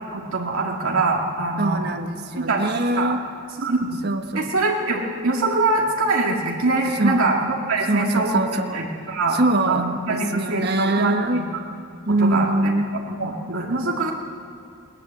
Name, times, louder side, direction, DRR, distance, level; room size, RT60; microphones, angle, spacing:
voice 1, 0.1-1.8 2.4-2.6 3.0-3.1 3.6-3.8 4.3-8.4 8.7-9.4 9.7-11.5 12.2-12.5 13.2-14.1, right 3 dB, 80° right, -1 dB, 2.1 m, -23 dB
voice 2, 1.6-3.2 4.0-4.5 7.0-7.4 7.8-11.5 12.0-12.9, right 2 dB, 50° right, 6 dB, 1.3 m, -24 dB
20.5 x 19.0 x 7.5 m, 2.5 s
head